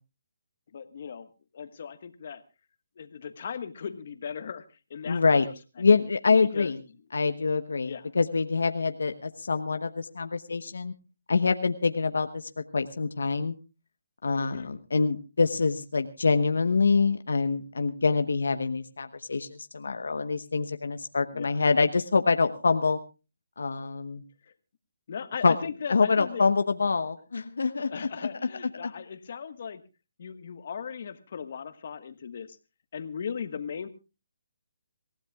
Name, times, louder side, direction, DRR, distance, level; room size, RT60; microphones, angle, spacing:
voice 1, 0.7-1.3 1.5-2.4 3.0-4.6 4.9-5.5 6.5-6.7 7.9-8.1 14.4-14.7 21.3-21.6 25.1-26.4 27.9-29.8 30.2-32.6 32.9-33.9, left 7 dB, 50° left, 10 dB, 1.4 m, -38 dB
voice 2, 5.1-5.5 5.8-6.8 7.1-10.9 11.3-13.5 14.2-23.0 23.6-24.2 25.4-25.6 25.9-28.1 28.8-28.9, left 4 dB, 80° left, 8 dB, 1.0 m, -25 dB
26.5 x 15.5 x 2.3 m, 0.30 s
hypercardioid pair, 160°, 0 cm